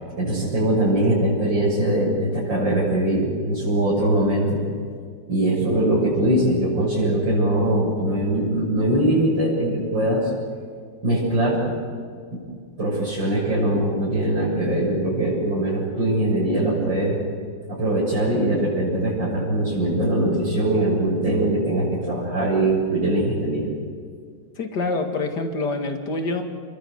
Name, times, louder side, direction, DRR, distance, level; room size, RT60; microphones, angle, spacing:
voice 1, 0.2-4.6 5.3-10.3 11.0-11.6 12.3-12.4 12.8-17.2 17.7-23.7, right 1 dB, 85° right, -8 dB, 8.3 m, -21 dB
voice 2, 24.6-26.4, left 3 dB, 65° left, 5 dB, 2.7 m, -26 dB
30.0 x 22.0 x 8.1 m, 2.1 s
omnidirectional pair, 2.0 m